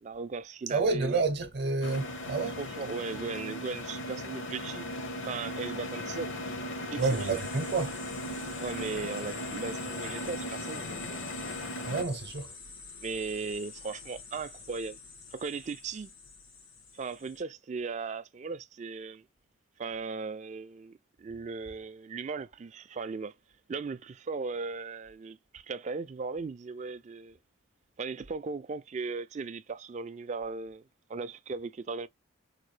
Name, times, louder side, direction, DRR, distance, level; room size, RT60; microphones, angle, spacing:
voice 1, 0.0-1.2 2.5-4.9 5.2-6.3 6.9-7.4 8.6-11.3 13.0-15.0 15.3-16.1 16.9-19.2 19.8-23.3 23.7-27.4 28.0-30.8 31.1-32.1, right 4 dB, 35° right, 0.3 m, -37 dB
voice 2, 0.7-2.6 7.0-7.9 11.8-12.5, right 3 dB, 50° right, 0.7 m, -29 dB
sound 1, 1.8-12.0, left 1 dB, 65° left, 0.8 m, -37 dB
sound 2, 7.0-17.4, left 4 dB, 85° left, 2.0 m, -47 dB
4.6 x 2.2 x 3.2 m
head